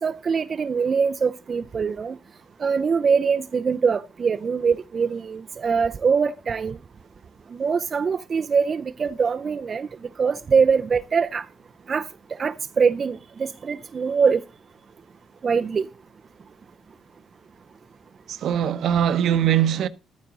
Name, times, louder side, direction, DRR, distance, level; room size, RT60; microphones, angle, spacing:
voice 1, 0.0-2.2 2.6-6.8 7.6-9.9 10.2-11.4 11.9-12.1 12.4-14.4 15.4-15.9, right 5 dB, 45° right, 0.5 m, -23 dB
voice 2, 18.3-19.9, right 10 dB, 70° right, 0.8 m, -21 dB
13.0 x 9.5 x 3.9 m
cardioid pair, 90°, 0 cm